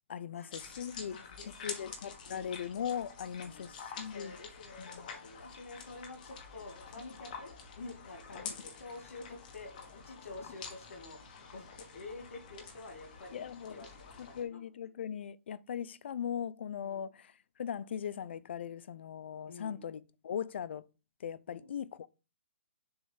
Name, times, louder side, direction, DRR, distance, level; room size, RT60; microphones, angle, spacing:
voice 1, 0.1-4.4 4.8-5.1 13.3-13.9 14.2-17.3 17.6-20.9 21.2-22.1, left 8 dB, 55° left, 0.5 m, -39 dB
sound 1, 0.5-14.4, left 5 dB, 35° left, 1.3 m, -48 dB
voice 2, 1.0-1.9 2.2-2.5 3.4-3.8 4.1-11.2 11.5-14.7 16.8-17.0 19.5-19.9 21.5-21.7, left 3 dB, 85° left, 1.9 m, -49 dB
6.9 x 3.2 x 5.6 m
hypercardioid pair, 165°, 7 cm